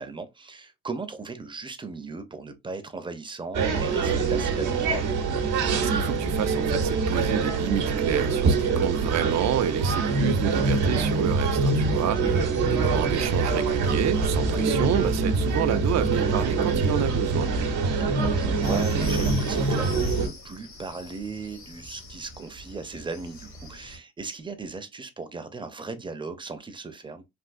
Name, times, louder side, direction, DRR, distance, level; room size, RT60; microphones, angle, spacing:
voice 1, 0.0-5.0 11.9-12.3 18.0-27.2, right 4 dB, 15° right, 0.6 m, -37 dB
sound 1, 3.5-20.3, right 4 dB, 80° right, 0.9 m, -24 dB
voice 2, 5.7-17.5, right 10 dB, 60° right, 0.5 m, -29 dB
sound 2, 18.6-24.0, left 3 dB, 75° left, 1.6 m, -43 dB
3.5 x 2.5 x 2.5 m
cardioid pair, 90°, 30 cm